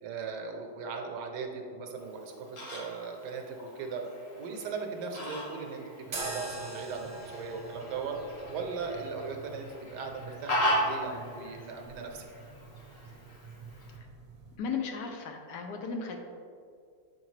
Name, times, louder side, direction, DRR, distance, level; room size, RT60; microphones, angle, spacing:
voice 1, 0.0-4.0 4.4-8.2 8.5-12.2, right 5 dB, 70° right, 2 dB, 1.2 m, -38 dB
Fowl, 2.0-14.0, equal, 50° left, 1.5 m, -37 dB
sound 1, 6.1-14.6, right 2 dB, 40° right, 0.8 m, -45 dB
voice 2, 14.6-16.2, left 5 dB, 70° left, 4 dB, 1.1 m, -35 dB
7.2 x 4.7 x 3.2 m, 2.3 s
omnidirectional pair, 2.0 m